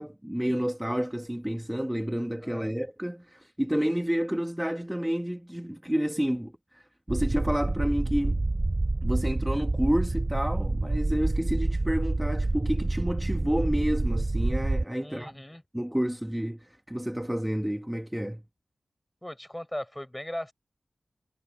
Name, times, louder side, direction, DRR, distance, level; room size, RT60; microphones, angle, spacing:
voice 1, 0.0-8.4 9.0-15.4 15.7-18.4, equal, 5° right, 1.6 m, -30 dB
voice 2, 2.4-2.7 15.0-15.6 19.2-20.5, left 1 dB, 10° left, 6.2 m, -38 dB
sound 1, 7.1-14.8, right 2 dB, 35° right, 2.6 m, -27 dB
cardioid pair, 55°, 0 cm